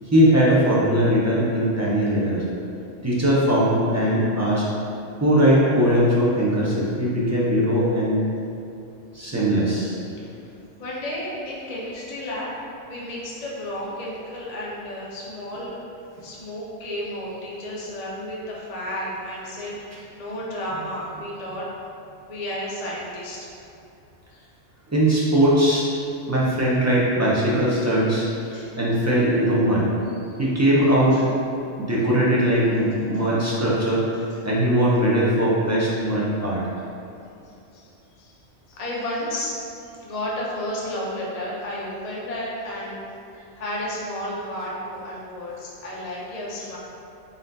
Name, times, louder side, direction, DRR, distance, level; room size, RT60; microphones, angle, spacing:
voice 1, 0.0-2.4 3.0-4.7 5.2-8.2 9.1-10.0 24.9-25.9 26.3-28.3 28.8-29.9 30.4-31.2 31.8-34.0 34.4-36.7, equal, 25° right, -7 dB, 0.3 m, -20 dB
voice 2, 10.2-10.5 10.8-12.5 12.8-15.8 16.2-21.7 22.3-23.6 24.3-24.4 28.4-28.8 30.1-30.4 31.1-31.2 37.7-37.9 38.2-38.3 38.7-43.0 43.6-46.8, left 1 dB, 40° left, -5 dB, 0.6 m, -32 dB
4.1 x 3.7 x 2.6 m, 2.7 s
omnidirectional pair, 1.3 m